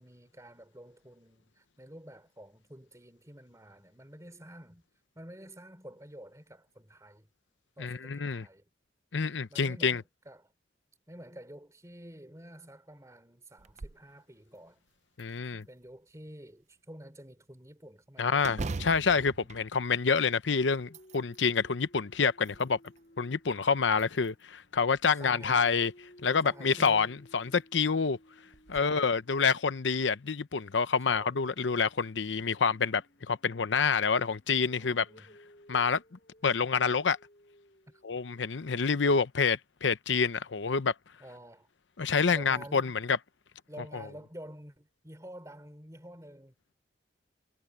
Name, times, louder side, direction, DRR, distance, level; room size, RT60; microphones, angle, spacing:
voice 1, 0.0-4.9 5.1-7.3 7.8-8.6 9.5-10.5 11.1-14.8 15.4-18.5 19.4-19.5 25.1-25.7 26.4-27.1 27.3-27.5 28.7-29.2 31.0-31.3 34.8-35.3 37.9-38.0 41.2-41.7 42.3-43.0 43.7-46.7, right 1 dB, 15° right, 3.2 m, -49 dB
voice 2, 7.8-8.4 9.1-10.0 15.2-15.6 18.2-22.8 23.2-25.9 26.2-28.2 28.7-35.0 35.7-36.0 36.4-37.2 38.0-40.9 42.0-43.2, left 5 dB, 85° left, 0.8 m, -27 dB
sound 1, 13.6-14.1 14.5-14.6 15.2-16.0 18.4-20.4 20.8-21.5 22.2-23.0 23.9-24.6 26.1-26.2 26.7-26.9 27.4-27.5 28.5-28.8, right 3 dB, 40° right, 0.5 m, -42 dB
Dog, 20.8-25.0 25.4-30.4 31.5-38.5, equal, 45° left, 6.0 m, -60 dB
head